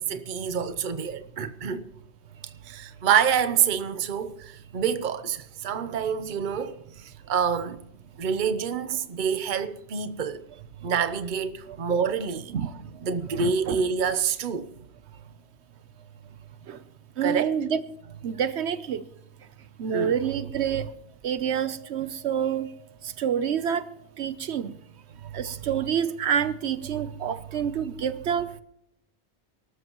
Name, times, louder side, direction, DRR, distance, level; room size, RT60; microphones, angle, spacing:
voice 1, 0.0-1.9 2.6-7.8 8.2-10.4 10.8-12.5 13.0-14.7 17.2-17.5 19.9-20.2, right 7 dB, 50° right, 0.9 m, -27 dB
voice 2, 13.3-13.8 16.7-16.8 17.2-17.8 18.2-19.0 19.8-20.9 21.2-22.7 23.0-23.9 24.2-24.7 25.3-28.5, right 8 dB, 80° right, 1.0 m, -27 dB
24.0 x 13.0 x 3.0 m
omnidirectional pair, 1.1 m